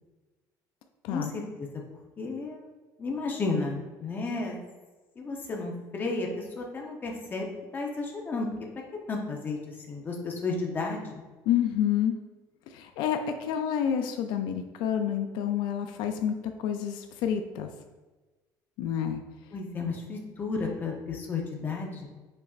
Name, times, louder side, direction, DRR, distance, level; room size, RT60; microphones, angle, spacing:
voice 1, 1.1-1.7 2.2-2.7 3.0-4.6 5.2-8.5 9.1-11.2 19.5-22.1, left 3 dB, 25° left, 0 dB, 0.7 m, -33 dB
voice 2, 11.5-12.1 12.7-17.7 18.8-19.2, left 9 dB, 85° left, 6 dB, 0.4 m, -28 dB
5.3 x 4.1 x 2.4 m, 1.2 s
cardioid pair, 150°, 8 cm